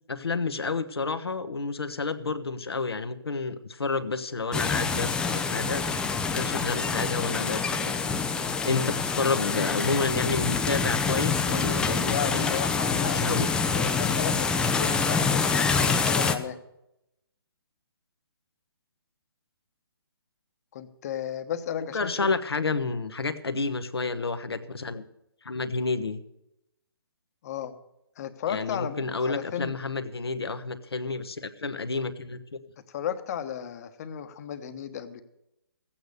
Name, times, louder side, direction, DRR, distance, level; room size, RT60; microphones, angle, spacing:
voice 1, 0.1-8.1 8.6-12.5 13.1-13.5 21.9-25.0 25.4-26.2 28.5-32.6, left 4 dB, 85° left, 8 dB, 1.3 m, -30 dB
sound 1, 4.5-16.3, left 5 dB, 5° left, 0.6 m, -26 dB
voice 2, 11.9-13.4 13.7-16.6 20.7-22.2 27.4-27.7 28.2-29.7 32.8-35.2, left 9 dB, 40° left, 9 dB, 1.2 m, -34 dB
14.5 x 8.9 x 6.7 m, 0.86 s
hypercardioid pair, 145°, 13 cm